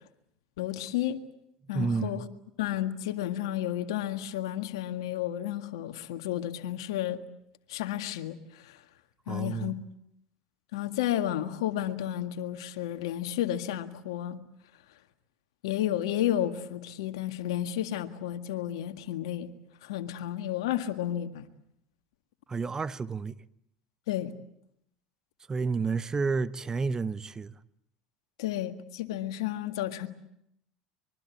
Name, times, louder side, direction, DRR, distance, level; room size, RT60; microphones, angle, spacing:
voice 1, 0.6-1.2 1.7-2.2 2.6-7.2 7.7-8.8 9.3-9.8 10.7-14.4 15.6-19.5 19.8-21.5 24.1-24.3 28.4-30.1, left 12 dB, 80° left, 1.9 m, -32 dB
voice 2, 1.6-2.3 9.3-9.8 22.5-23.4 25.5-27.6, right 4 dB, 25° right, 1.1 m, -30 dB
25.0 x 23.0 x 8.4 m
hypercardioid pair, 85°, 3 cm